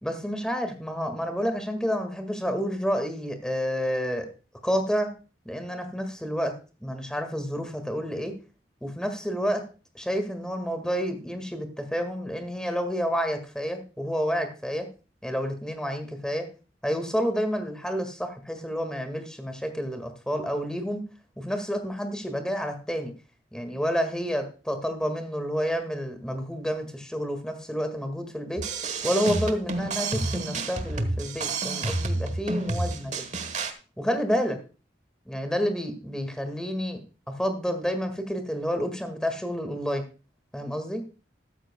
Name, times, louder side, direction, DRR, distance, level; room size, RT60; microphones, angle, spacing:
voice 1, 0.0-4.3 4.6-5.1 5.5-6.5 6.8-8.3 8.8-9.6 10.0-14.9 15.2-16.5 16.8-21.0 21.4-23.1 23.5-28.6 29.0-33.1 34.0-34.6 35.3-37.0 37.3-40.1 40.5-41.0, equal, 5° left, 7 dB, 1.8 m, -29 dB
sound 1, 28.6-33.7, right 2 dB, 40° right, 1.2 m, -29 dB
13.0 x 13.0 x 2.3 m, 0.33 s
head